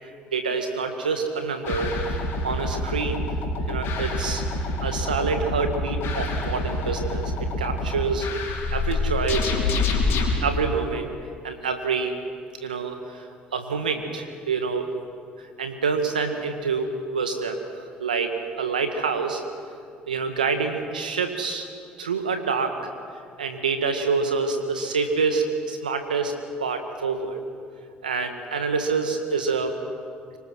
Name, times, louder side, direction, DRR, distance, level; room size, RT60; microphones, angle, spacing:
voice 1, 0.3-2.2 2.4-3.2 3.7-4.4 4.8-8.3 8.7-9.5 10.4-11.1 11.4-12.1 12.6-13.3 13.5-15.0 15.6-17.6 18.0-19.4 20.1-21.7 22.0-22.8 23.4-26.3 26.6-27.4 28.0-29.8, right 5 dB, 90° right, 7 dB, 1.8 m, -27 dB
sound 1, 1.6-10.4, left 2 dB, 65° left, 4.4 m, -27 dB
25.5 x 24.0 x 6.4 m, 2.3 s
hypercardioid pair, 50°, 4 cm